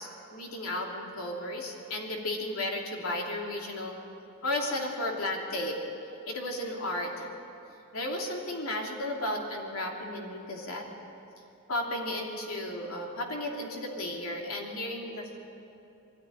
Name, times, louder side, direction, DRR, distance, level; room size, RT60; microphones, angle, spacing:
voice 1, 0.0-3.9 4.4-5.8 6.3-7.3 7.9-10.8 11.7-15.4, left 1 dB, 80° left, 0 dB, 2.8 m, -34 dB
22.5 x 13.5 x 9.9 m, 2.8 s
head